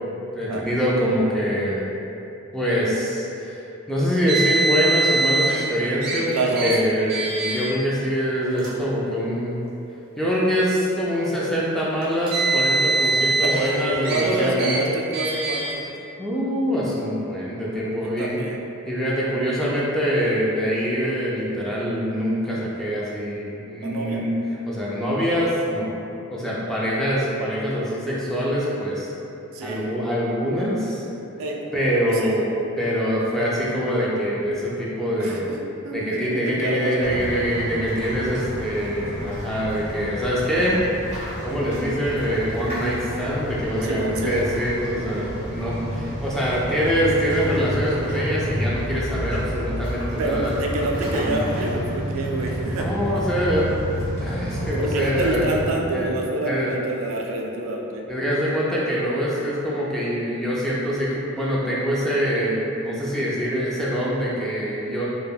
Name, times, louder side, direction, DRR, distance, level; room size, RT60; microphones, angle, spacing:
voice 1, 0.3-1.9 2.5-3.6 3.9-9.7 10.2-14.9 16.2-18.5 18.9-24.3 24.7-26.0 26.3-29.1 29.6-31.1 31.7-35.5 35.9-40.8 41.4-50.5 51.1-51.5 52.6-55.5 55.9-56.1 56.5-56.7 58.1-65.1, equal, ahead, -7 dB, 0.3 m, -24 dB
Car, 4.3-5.6 6.0-6.2 6.5-6.7 7.1-7.7 8.5-8.7 9.6-9.7 12.0-13.7 14.0-14.2 14.6-14.8 15.1-15.7, right 2 dB, 50° right, 0.7 m, -23 dB
voice 2, 6.3-6.8 13.0-13.1 13.4-13.7 14.1-15.8 18.0-18.6 23.8-24.2 26.7-26.8 29.5-29.8 31.4-31.6 32.0-32.3 35.2-37.2 43.8-44.5 50.2-53.0 54.8-58.0, right 2 dB, 80° right, -1 dB, 0.4 m, -27 dB
sound 1, 37.0-55.7, equal, 30° right, 1.3 m, -30 dB
3.2 x 2.2 x 2.2 m, 2.8 s
head